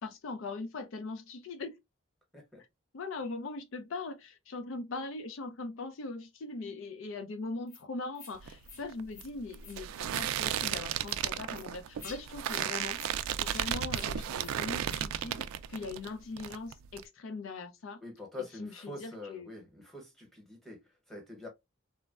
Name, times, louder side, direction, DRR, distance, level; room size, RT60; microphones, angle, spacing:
voice 1, 0.0-1.8 2.9-13.0 13.4-18.0 18.4-19.5, left 3 dB, 75° left, 0.4 m, -40 dB
sound 1, 7.7-7.8 8.1-8.3 8.6-8.8 9.1-9.3 9.6-9.8 10.1-10.3 10.6-10.7 11.0-11.2 11.5-11.7 12.0-12.2 12.5-12.7 12.9-13.1 13.4-13.6 13.9-14.1 14.4-14.5 14.9-15.0, left 4 dB, 45° left, 0.7 m, -49 dB
sound 2, 8.4-16.1 16.4-17.0, right 10 dB, 90° right, 0.3 m, -34 dB
voice 2, 18.0-21.5, left 2 dB, ahead, 0.9 m, -45 dB
3.2 x 2.1 x 2.3 m
head